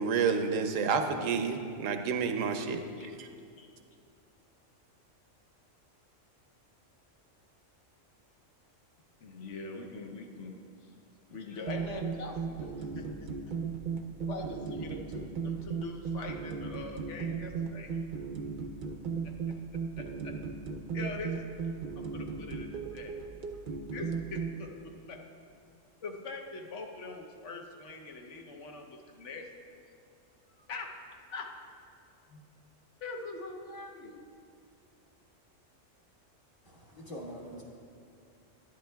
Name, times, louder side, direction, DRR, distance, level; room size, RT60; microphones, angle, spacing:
voice 1, 0.0-3.3, right 5 dB, 90° right, 7 dB, 1.0 m, -30 dB
voice 2, 9.2-10.5 10.8-10.9 11.3-13.6 14.2-18.0 19.2-19.3 20.0-20.3 20.9-23.1 23.9-25.2 26.0-29.5 30.6-31.5 32.3-32.4 33.0-34.2, left 3 dB, 70° left, 2 dB, 1.1 m, -43 dB
sound 1, 11.7-24.5, right 5 dB, 55° right, 0.6 m, -36 dB
voice 3, 36.6-37.6, equal, 40° left, -4 dB, 1.8 m, -44 dB
11.0 x 10.5 x 2.3 m, 2.4 s
omnidirectional pair, 1.3 m